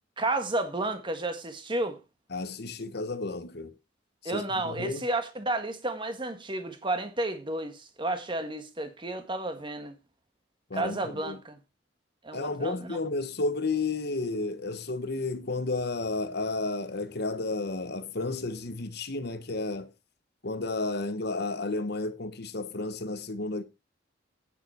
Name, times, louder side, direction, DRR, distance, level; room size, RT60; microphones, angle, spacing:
voice 1, 0.2-2.0 4.2-10.0 10.7-11.5 12.2-13.0, right 2 dB, 25° right, 1.6 m, -32 dB
voice 2, 2.3-3.7 4.2-5.0 10.7-11.4 12.3-19.9 20.4-23.6, left 3 dB, 55° left, 1.1 m, -32 dB
9.2 x 8.3 x 4.3 m
head